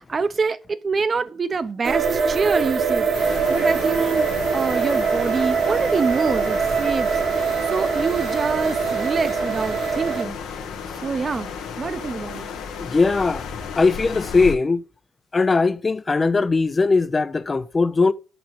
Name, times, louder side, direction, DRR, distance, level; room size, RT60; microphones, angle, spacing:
voice 1, 0.1-4.3 4.5-10.4 11.0-11.5 11.8-12.5, right 4 dB, 40° right, 0.7 m, -26 dB
sound 1, 1.8-10.2, right 5 dB, 60° right, 1.3 m, -23 dB
sound 2, 3.1-14.5, left 6 dB, 90° left, 1.2 m, -34 dB
voice 2, 12.8-13.5 13.8-14.8 15.3-18.1, left 4 dB, 30° left, 0.4 m, -19 dB
5.9 x 4.7 x 6.3 m
cardioid pair, 90°, 0 cm